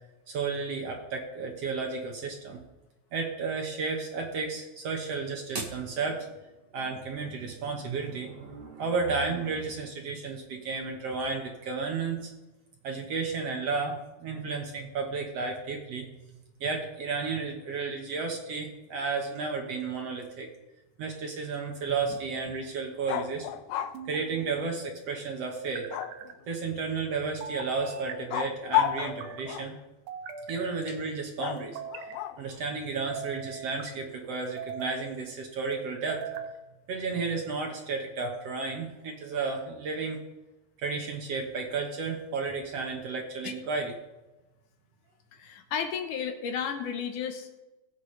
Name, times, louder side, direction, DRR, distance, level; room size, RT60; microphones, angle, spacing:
voice 1, 0.3-2.6 3.1-6.3 6.7-12.3 12.8-16.1 16.6-20.5 21.0-23.5 24.0-25.9 26.5-29.8 30.5-31.8 32.4-36.4 36.9-40.2 40.8-43.9, right 4 dB, 60° right, 1 dB, 1.7 m, -32 dB
sound 1, 21.9-22.6 23.9-24.7 25.6-26.3 27.4-28.2 28.8-29.4 30.1-30.9 31.6-32.2 33.0-33.9 34.4-35.0 35.7-36.5, right 7 dB, 90° right, 3.0 m, -41 dB
sound 2, 23.1-24.0 25.9-26.5 28.3-29.8 31.4-32.6, left 12 dB, 80° left, 2.4 m, -31 dB
voice 2, 45.3-47.6, left 7 dB, 65° left, 5 dB, 2.2 m, -33 dB
20.5 x 8.5 x 3.3 m, 1.0 s
omnidirectional pair, 4.5 m